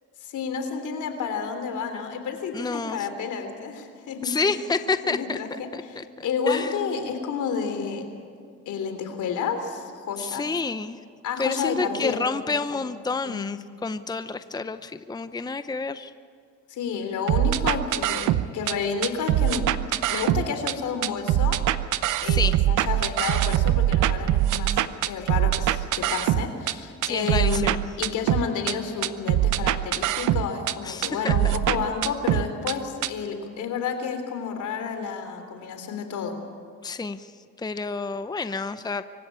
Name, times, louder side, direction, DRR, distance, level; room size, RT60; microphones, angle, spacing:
voice 1, 0.2-4.5 5.0-8.1 8.6-10.5 11.2-12.2 12.7-12.8 13.2-13.6 16.7-19.7 20.1-21.6 22.2-27.7 28.0-36.4, left 6 dB, 80° left, 7 dB, 3.4 m, -30 dB
voice 2, 2.5-3.1 4.2-5.4 5.7-6.7 10.2-11.0 11.4-16.1 22.2-22.6 27.0-27.8 30.8-31.5 36.8-37.3 37.6-39.0, left 4 dB, 15° left, 11 dB, 0.7 m, -29 dB
sound 1, 17.3-18.7 19.0-20.7 21.0-26.7 27.0-28.7 29.0-30.7 31.0-32.7 33.0-33.1, right 13 dB, 90° right, 0.8 m, -23 dB
25.0 x 16.0 x 8.8 m, 2.2 s
cardioid pair, 90°, 30 cm